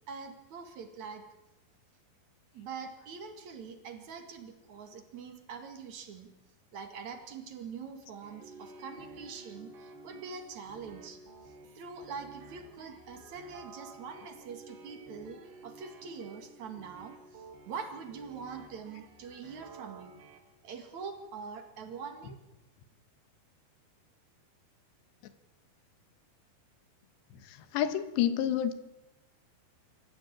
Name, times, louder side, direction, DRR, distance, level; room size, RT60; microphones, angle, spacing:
voice 1, 0.1-1.2 2.5-6.3 6.7-11.2 11.4-20.2 20.6-22.4, right 5 dB, 50° right, 6 dB, 2.8 m, -44 dB
sound 1, 8.2-20.4, right 3 dB, 75° right, 5.2 m, -51 dB
voice 2, 27.5-28.7, left 10 dB, 75° left, 11 dB, 3.3 m, -29 dB
25.5 x 14.5 x 8.9 m, 0.98 s
omnidirectional pair, 5.2 m